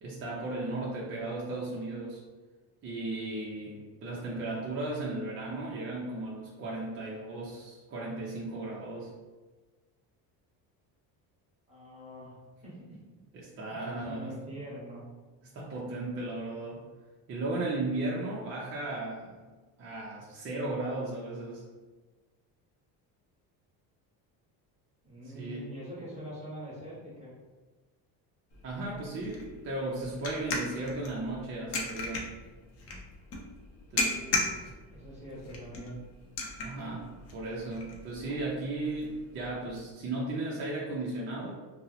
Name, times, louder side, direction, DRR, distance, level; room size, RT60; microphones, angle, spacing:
voice 1, 0.0-2.2 2.8-9.1 13.4-14.3 15.4-16.8 17.3-19.3 19.8-21.6 25.3-25.7 28.6-32.3 33.9-34.2 36.6-41.5, right 2 dB, 35° right, -5 dB, 0.5 m, -35 dB
voice 2, 11.7-13.0 13.9-15.0 25.0-27.3 34.0-34.6 34.9-36.0, equal, 15° right, -7 dB, 1.0 m, -44 dB
sound 1, 28.5-39.8, left 2 dB, 40° left, 0.6 m, -38 dB
2.7 x 2.0 x 3.9 m, 1.3 s
cardioid pair, 160°, 39 cm